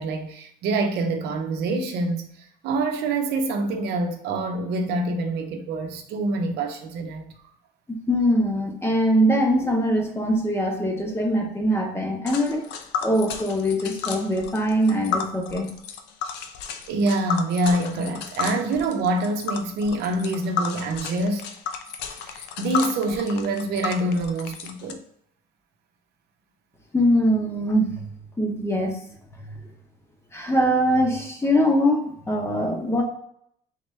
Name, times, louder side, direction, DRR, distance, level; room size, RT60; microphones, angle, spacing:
voice 1, 0.0-2.3 2.6-7.3 16.9-21.5 22.2-25.0, right 2 dB, 75° right, 0.7 m, -26 dB
voice 2, 7.9-12.6 13.0-15.7 26.9-28.1 28.4-29.0 29.4-29.6 30.3-33.0, equal, 15° left, 0.8 m, -22 dB
Tick, 12.3-24.9, left 6 dB, 90° left, 0.5 m, -33 dB
3.7 x 3.2 x 3.2 m
cardioid pair, 110°, 17 cm